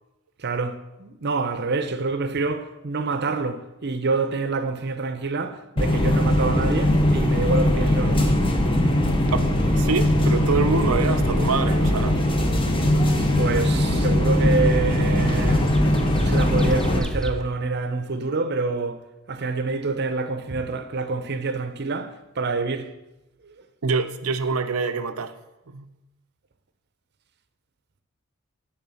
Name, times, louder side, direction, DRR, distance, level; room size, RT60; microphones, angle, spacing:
voice 1, 0.4-8.4 13.4-15.7 16.2-22.9, right 3 dB, 50° right, 0.7 m, -27 dB
sound 1, 5.8-17.0, left 1 dB, 25° left, 1.0 m, -21 dB
sound 2, 6.3-17.4, equal, 5° left, 0.5 m, -28 dB
voice 2, 9.8-12.2 23.8-25.4 25.7-25.9, right 4 dB, 85° right, 0.6 m, -25 dB
10.5 x 3.9 x 6.9 m
head